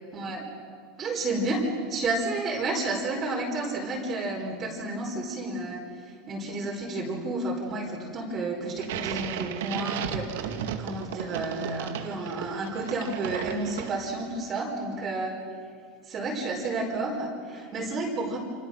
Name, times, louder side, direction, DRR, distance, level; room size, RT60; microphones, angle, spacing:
voice 1, 0.1-0.4 1.0-5.8 6.3-10.5 10.8-15.3 16.1-18.4, right 2 dB, 25° right, -2 dB, 4.5 m, -31 dB
sound 1, 8.8-14.3, right 9 dB, 85° right, 2.1 m, -35 dB
29.5 x 27.5 x 6.5 m, 2.1 s
supercardioid pair, 155°, 0 cm